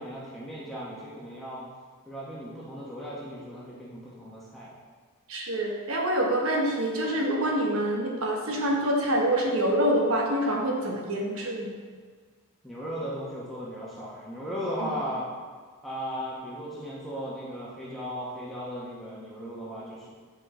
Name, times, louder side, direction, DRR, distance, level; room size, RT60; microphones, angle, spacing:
voice 1, 0.0-1.6 2.1-4.7 12.6-15.3 15.8-20.1, equal, ahead, -8 dB, 1.1 m, -36 dB
voice 2, 5.3-11.7 14.8-14.9, right 1 dB, 65° right, 0 dB, 1.2 m, -26 dB
7.8 x 5.0 x 3.8 m, 1.5 s
head